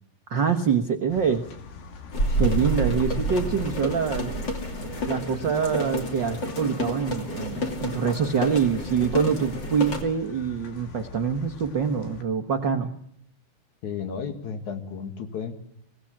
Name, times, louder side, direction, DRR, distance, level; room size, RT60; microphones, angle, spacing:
voice 1, 0.3-1.4 2.4-4.3 5.1-12.9, right 6 dB, 60° right, 6 dB, 1.1 m, -25 dB
sound 1, 1.1-12.2, left 5 dB, 85° left, 3.9 m, -43 dB
sound 2, 2.1-10.0, equal, 35° left, 3.0 m, -29 dB
voice 2, 2.3-3.0 13.8-15.5, left 6 dB, 60° left, 6 dB, 3.3 m, -34 dB
23.5 x 18.0 x 8.7 m, 0.74 s
omnidirectional pair, 3.9 m